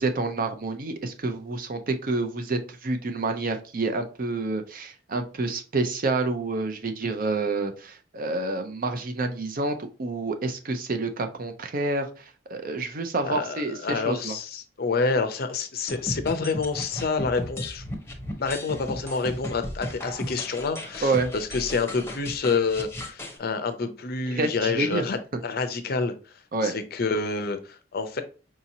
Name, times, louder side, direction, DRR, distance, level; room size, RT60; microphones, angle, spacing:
voice 1, 0.0-14.4 21.0-21.3 24.3-25.0 26.5-26.7, right 3 dB, 50° right, 0.6 m, -28 dB
voice 2, 13.3-17.8 18.4-26.1 26.6-28.2, left 4 dB, 55° left, 0.6 m, -28 dB
sound 1, 15.9-23.4, left 1 dB, 15° left, 0.7 m, -36 dB
4.8 x 2.9 x 2.7 m
head